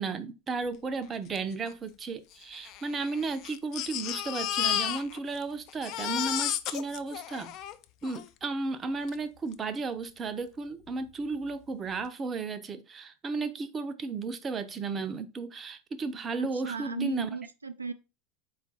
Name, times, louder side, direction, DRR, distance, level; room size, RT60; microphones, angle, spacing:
voice 1, 0.0-7.5 8.0-17.3, right 4 dB, 25° right, 0.5 m, -34 dB
Crying sobbing, 1.4-1.5 1.7-1.8 2.5-5.4 5.7-8.3 9.1-9.2 9.5-9.6, left 11 dB, 50° left, 0.4 m, -33 dB
voice 2, 16.4-17.9, right 5 dB, 90° right, 0.3 m, -35 dB
4.3 x 2.4 x 4.0 m
figure-of-eight pair, 80°, 0 cm